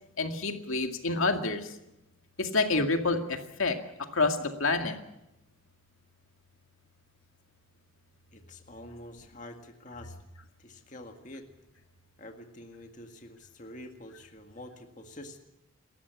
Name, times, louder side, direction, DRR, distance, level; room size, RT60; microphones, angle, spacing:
voice 1, 0.2-1.8 2.4-5.0, left 3 dB, 80° left, 5 dB, 2.2 m, -28 dB
voice 2, 8.3-10.2 10.6-11.5 12.2-15.4, left 1 dB, 35° left, 4 dB, 2.0 m, -47 dB
28.0 x 14.5 x 8.4 m, 0.88 s
head